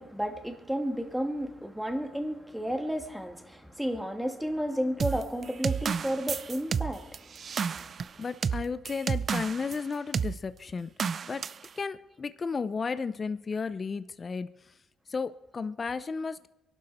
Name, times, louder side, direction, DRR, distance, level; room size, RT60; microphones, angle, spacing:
voice 1, 0.0-7.8, equal, 5° right, 5 dB, 2.2 m, -32 dB
sound 1, 5.0-9.8 10.1-10.4 11.0-11.7, right 6 dB, 50° right, 0.4 m, -31 dB
voice 2, 8.2-10.9 11.3-11.4 11.8-14.5 15.1-16.5, left 5 dB, 35° left, 13 dB, 0.6 m, -33 dB
23.5 x 11.5 x 4.3 m, 1.0 s
cardioid pair, 90°, 0 cm